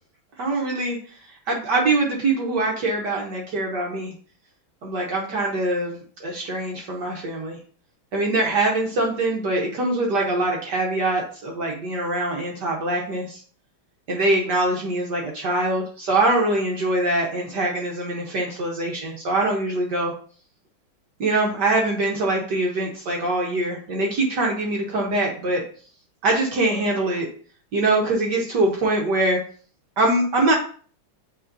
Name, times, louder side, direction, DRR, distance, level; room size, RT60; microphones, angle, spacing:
voice 1, 0.4-1.0 1.5-4.1 4.8-7.6 8.1-13.4 14.1-20.1 21.2-25.6 26.2-27.3 27.7-29.4 30.0-30.5, right 2 dB, 60° right, -1 dB, 1.6 m, -23 dB
8.6 x 4.2 x 2.7 m, 0.43 s
omnidirectional pair, 2.2 m